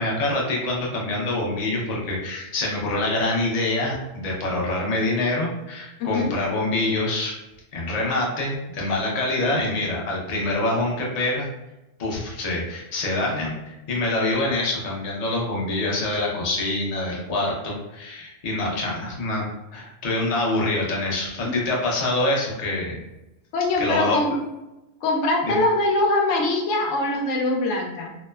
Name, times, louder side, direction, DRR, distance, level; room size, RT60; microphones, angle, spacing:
voice 1, 0.0-7.4 7.7-11.5 12.0-23.0 23.8-24.2 25.4-25.6, left 2 dB, 45° left, -3 dB, 0.6 m, -25 dB
voice 2, 6.0-6.3 23.5-24.3 25.0-28.1, left 2 dB, 80° left, 1 dB, 0.9 m, -22 dB
2.9 x 2.0 x 2.2 m, 0.99 s
omnidirectional pair, 1.2 m